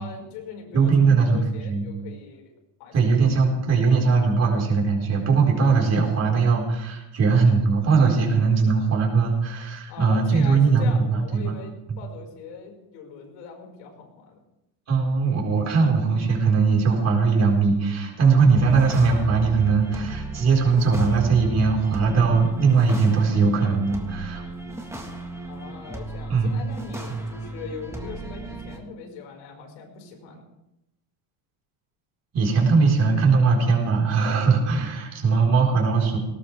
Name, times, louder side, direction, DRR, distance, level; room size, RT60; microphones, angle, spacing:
voice 1, 0.0-2.5 2.8-3.2 9.9-14.4 25.5-30.4, left 5 dB, 80° left, 2 dB, 5.4 m, -40 dB
voice 2, 0.7-1.9 2.9-11.6 11.9-12.0 14.9-24.4 26.3-26.6 27.1-27.2 32.3-36.2, right 4 dB, 30° right, -1 dB, 4.6 m, -20 dB
sound 1, 18.5-28.8, right 3 dB, 5° right, 1.6 m, -35 dB
20.0 x 18.0 x 3.5 m, 0.89 s
cardioid pair, 165°, 49 cm